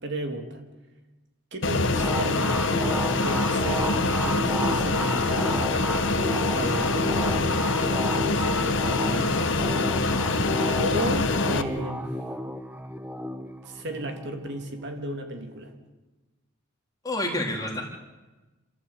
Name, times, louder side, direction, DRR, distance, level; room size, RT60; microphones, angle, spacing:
voice 1, 0.0-0.6 1.5-5.5 6.5-7.1 8.3-9.5 10.8-12.1 13.6-15.7, right 1 dB, 55° right, 5 dB, 2.8 m, -34 dB
Fixed-wing aircraft airplane, 1.6-11.6, left 3 dB, 60° left, 1.2 m, -25 dB
sound 1, 1.9-15.2, equal, 10° right, 1.0 m, -32 dB
voice 2, 17.0-17.8, left 1 dB, 15° left, 0 dB, 3.5 m, -29 dB
28.5 x 13.5 x 8.7 m, 1.2 s
head